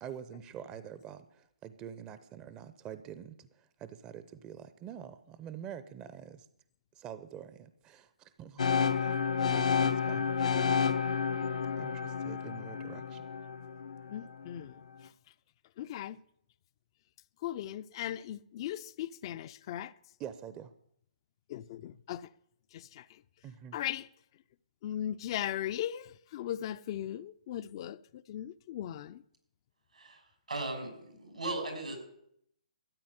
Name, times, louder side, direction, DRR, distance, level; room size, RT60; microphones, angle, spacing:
voice 1, 0.0-6.5 7.0-8.7 9.0-9.1 9.4-10.8 11.8-13.2 20.2-20.7 23.4-23.8, right 9 dB, 20° right, 0.7 m, -46 dB
sound 1, 8.6-14.5, left 6 dB, 70° left, 0.9 m, -30 dB
voice 2, 14.1-15.1 15.8-16.2 17.4-19.9 21.5-22.3 22.7-23.2 23.7-24.1 24.8-29.2, left 11 dB, 40° left, 0.5 m, -38 dB
voice 3, 30.5-32.0, right 2 dB, 85° right, 6.3 m, -37 dB
13.5 x 8.8 x 9.6 m
figure-of-eight pair, 130°, 4 cm